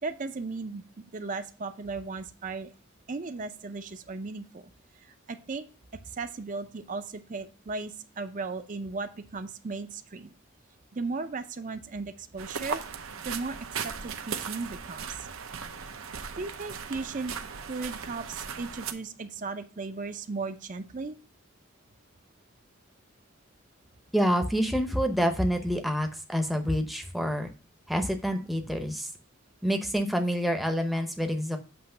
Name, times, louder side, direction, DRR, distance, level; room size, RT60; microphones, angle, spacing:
voice 1, 0.0-0.8 1.1-2.7 3.1-4.7 5.0-5.6 6.1-10.3 10.9-12.8 13.2-15.3 16.4-17.3 17.7-21.2, right 3 dB, 40° right, 10 dB, 0.5 m, -36 dB
sound 1, 12.4-18.9, right 6 dB, 90° right, 0.7 m, -37 dB
voice 2, 24.1-27.5 27.9-29.1 29.6-31.6, equal, ahead, 5 dB, 0.7 m, -27 dB
7.9 x 3.1 x 5.5 m, 0.34 s
head